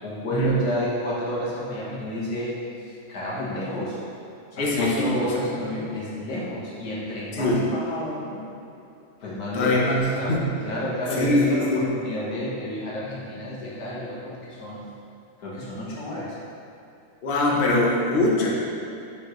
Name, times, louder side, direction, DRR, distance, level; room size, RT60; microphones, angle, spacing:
voice 1, 0.0-2.5 2.8-4.0 4.5-8.4 9.2-10.4 10.6-14.8 15.4-16.4, left 1 dB, 85° left, -7 dB, 1.9 m, -30 dB
voice 2, 4.6-5.3 7.3-7.6 9.5-10.5 11.1-11.9 17.2-18.5, left 1 dB, 45° left, -4 dB, 1.0 m, -22 dB
6.7 x 5.7 x 3.1 m, 2.7 s
omnidirectional pair, 1.6 m